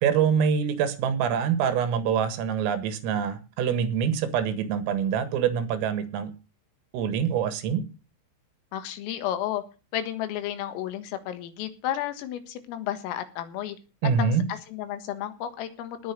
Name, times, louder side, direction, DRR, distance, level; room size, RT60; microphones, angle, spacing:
voice 1, 0.0-6.3 6.9-7.8 14.0-14.5, right 7 dB, 90° right, 12 dB, 4.2 m, -25 dB
voice 2, 8.7-9.6 9.9-13.8 14.2-16.1, left 11 dB, 90° left, 10 dB, 4.2 m, -32 dB
19.0 x 6.5 x 6.5 m, 0.32 s
omnidirectional pair, 5.8 m